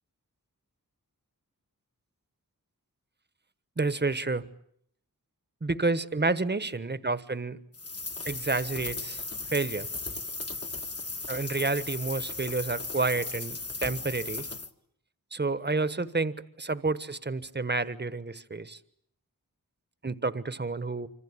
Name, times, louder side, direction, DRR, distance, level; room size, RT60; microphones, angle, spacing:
voice 1, 3.8-4.4 5.6-7.6 8.3-9.2 9.5-9.9 11.3-13.6 13.8-14.5 15.3-18.8 20.0-21.1, right 3 dB, 30° right, 14 dB, 1.3 m, -29 dB
sound 1, 7.7-14.7, left 3 dB, 40° left, 1.8 m, -36 dB
26.5 x 26.0 x 8.5 m, 0.69 s
wide cardioid pair, 80°, 35 cm